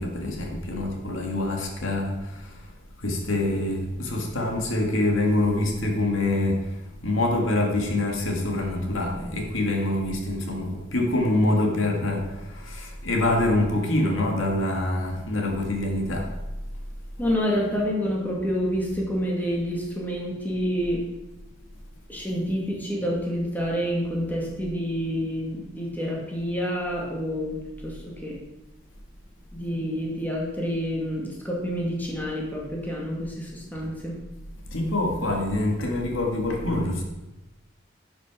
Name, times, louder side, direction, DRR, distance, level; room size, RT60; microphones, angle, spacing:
voice 1, 0.0-2.2 3.0-6.6 7.0-12.2 12.6-16.3 34.7-37.0, left 1 dB, 85° left, 1 dB, 2.1 m, -25 dB
voice 2, 17.2-21.0 22.1-27.6 27.8-28.3 29.5-34.1, equal, 10° left, -3 dB, 2.2 m, -28 dB
10.5 x 6.6 x 6.1 m, 1.0 s
head